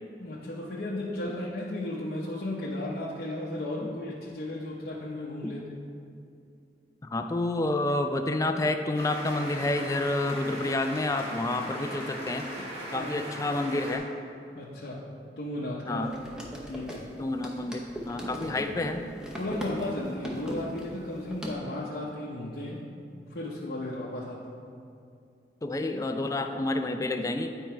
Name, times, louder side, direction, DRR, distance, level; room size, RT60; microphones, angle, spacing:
voice 1, 0.2-5.9 13.0-13.1 14.5-15.1 15.4-16.3 16.7-17.1 18.3-18.9 19.4-22.9 23.3-24.5, left 1 dB, 60° left, -5 dB, 0.7 m, -35 dB
voice 2, 7.0-12.5 12.9-14.1 15.9-16.1 17.2-19.1 25.6-27.5, left 2 dB, 20° left, 6 dB, 0.3 m, -29 dB
sound 1, 8.9-14.0, equal, 35° right, 1.9 m, -39 dB
sound 2, 16.0-21.5, equal, 5° right, 0.8 m, -39 dB
9.3 x 4.5 x 4.4 m, 2.5 s
head